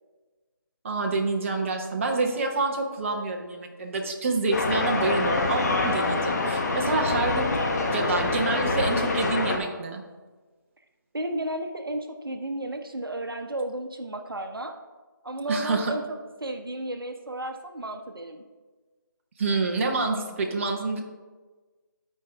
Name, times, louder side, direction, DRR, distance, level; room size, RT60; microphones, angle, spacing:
voice 1, 0.8-7.5 7.9-10.0 15.5-15.9 19.4-21.0, right 3 dB, 35° right, 2 dB, 0.9 m, -27 dB
sound 1, 4.5-9.6, left 3 dB, 50° left, 1.1 m, -25 dB
voice 2, 11.1-14.7 15.2-18.4, right 1 dB, 90° right, 6 dB, 0.8 m, -33 dB
13.0 x 4.6 x 3.5 m, 1.3 s
figure-of-eight pair, 155°, 11 cm